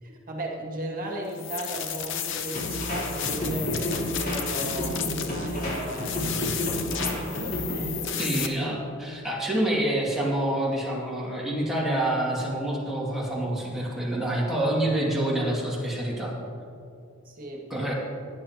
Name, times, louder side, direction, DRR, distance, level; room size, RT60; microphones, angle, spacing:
voice 1, 0.0-8.7 17.2-17.9, right 1 dB, 40° right, -1 dB, 2.0 m, -36 dB
sound 1, 1.3-8.5, left 9 dB, 60° left, 0.8 m, -33 dB
sound 2, 2.5-8.0, equal, 45° left, 3.3 m, -31 dB
voice 2, 8.2-16.3 17.7-17.9, right 1 dB, ahead, -5 dB, 2.3 m, -27 dB
18.0 x 10.0 x 3.0 m, 2.5 s
head